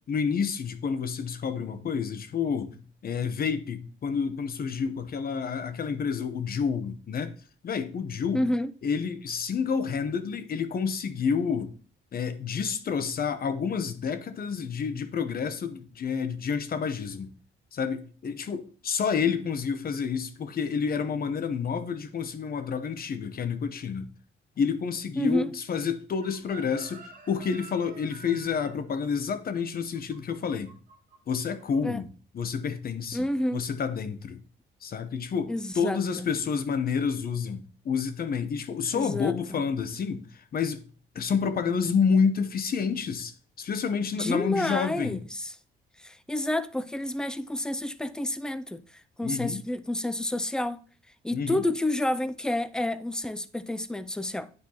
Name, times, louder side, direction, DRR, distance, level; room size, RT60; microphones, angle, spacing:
voice 1, 0.1-7.3 7.6-8.5 8.8-11.7 12.1-17.3 17.7-24.1 24.6-30.7 31.3-32.1 32.3-33.2 33.5-34.4 34.8-40.8 41.1-45.2 49.2-49.6 51.3-51.6, left 6 dB, 50° left, 0.8 m, -29 dB
voice 2, 8.3-8.7 25.2-25.5 31.8-32.0 33.1-33.6 35.5-36.3 38.9-39.3 44.1-45.5 46.0-48.8 49.2-50.8 51.2-54.5, left 1 dB, 5° left, 0.4 m, -29 dB
Chicken rooster, 26.2-31.2 31.5-31.8, right 5 dB, 45° right, 1.9 m, -49 dB
9.6 x 4.4 x 2.9 m
cardioid pair, 90°, 20 cm